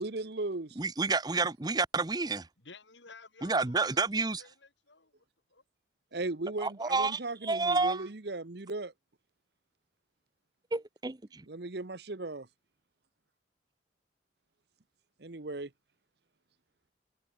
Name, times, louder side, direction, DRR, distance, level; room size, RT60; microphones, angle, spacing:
voice 1, 0.0-0.7 6.1-8.9 11.5-12.5 15.2-15.7, right 2 dB, 60° right, 1.1 m, -37 dB
voice 2, 0.8-2.5 3.4-4.4 6.6-8.1 10.7-11.4, right 3 dB, 20° right, 0.7 m, -30 dB
voice 3, 2.6-5.6, left 4 dB, 75° left, 4.7 m, -55 dB
head